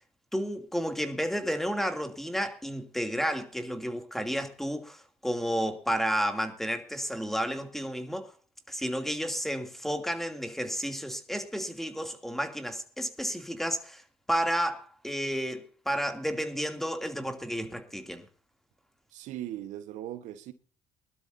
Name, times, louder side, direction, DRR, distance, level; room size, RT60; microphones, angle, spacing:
voice 1, 0.3-8.3 8.7-14.0 14.3-18.2, equal, ahead, 2.7 m, -31 dB
voice 2, 19.1-20.5, right 12 dB, 75° right, 1.3 m, -39 dB
22.0 x 12.5 x 2.7 m
supercardioid pair, 80°, 13 cm